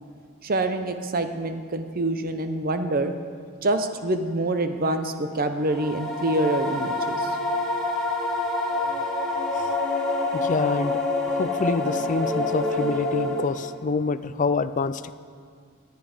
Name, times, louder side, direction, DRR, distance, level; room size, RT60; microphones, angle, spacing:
voice 1, 0.4-3.1 3.6-7.4, right 2 dB, 40° right, 8 dB, 0.8 m, -26 dB
sound 1, 5.6-13.8, left 2 dB, 5° left, 1.8 m, -27 dB
voice 2, 10.3-15.1, left 4 dB, 35° left, 13 dB, 0.4 m, -27 dB
18.0 x 9.4 x 5.0 m, 2.1 s
head